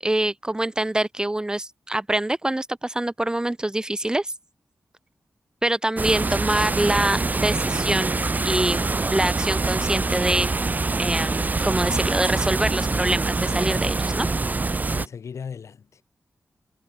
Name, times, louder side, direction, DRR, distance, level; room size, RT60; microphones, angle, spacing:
voice 1, 0.0-4.3 5.6-8.2 8.4-10.5 11.0-14.3, right 1 dB, 15° right, 0.8 m, -25 dB
sound 1, 6.0-15.1, right 3 dB, 35° right, 3.0 m, -25 dB
voice 2, 14.9-16.0, left 6 dB, 80° left, 4.2 m, -37 dB
wide cardioid pair, 100°, 5 cm